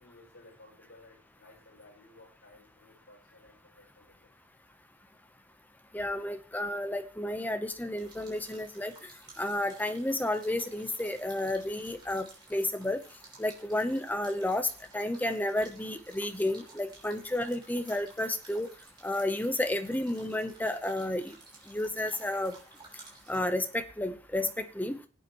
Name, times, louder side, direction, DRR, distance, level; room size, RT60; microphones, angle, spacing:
voice 1, 0.0-4.3, left 2 dB, 60° left, -3 dB, 6.0 m, -57 dB
voice 2, 5.9-8.9 9.4-13.0 13.4-14.7 14.9-18.7 19.0-21.4 21.7-22.6 23.3-25.0, left 1 dB, 10° left, 9 dB, 0.8 m, -31 dB
sound 1, 8.0-23.4, right 3 dB, 25° right, 3.5 m, -55 dB
20.5 x 8.3 x 3.1 m, 0.40 s
head